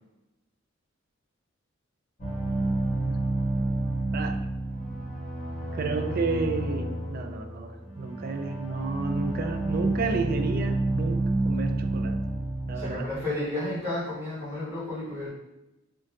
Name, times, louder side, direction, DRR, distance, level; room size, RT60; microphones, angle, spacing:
sound 1, 2.2-13.0, right 2 dB, 35° left, 1.1 m, -29 dB
voice 1, 5.7-12.2 12.7-13.1, right 4 dB, 45° right, 6 dB, 0.4 m, -31 dB
voice 2, 12.7-15.3, left 1 dB, 10° right, -12 dB, 1.4 m, -32 dB
3.6 x 2.6 x 3.6 m, 0.97 s
head